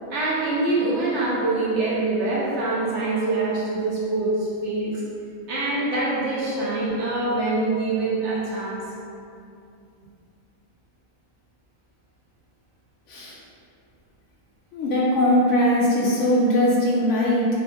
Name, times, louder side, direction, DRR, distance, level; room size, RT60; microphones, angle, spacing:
voice 1, 0.1-5.0 5.5-8.8, right 2 dB, 60° right, -6 dB, 0.9 m, -24 dB
voice 2, 14.7-17.5, left 1 dB, 65° left, -4 dB, 0.8 m, -20 dB
3.7 x 2.4 x 4.2 m, 2.5 s
omnidirectional pair, 1.5 m